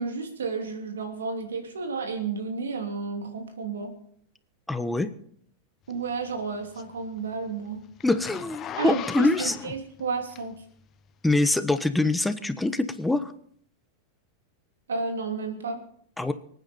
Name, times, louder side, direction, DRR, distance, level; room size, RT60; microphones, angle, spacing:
voice 1, 0.0-3.9 5.9-7.8 8.8-10.6 14.9-15.8, right 4 dB, 80° right, 5 dB, 2.9 m, -32 dB
voice 2, 4.7-5.1 8.0-9.5 11.2-13.3 16.2-16.3, left 2 dB, 5° left, 11 dB, 1.2 m, -24 dB
Zipper (clothing), 5.9-10.8 11.4-11.5, left 11 dB, 35° left, 0.9 m, -38 dB
25.0 x 9.4 x 4.4 m, 0.62 s
hypercardioid pair, 100°, 0 cm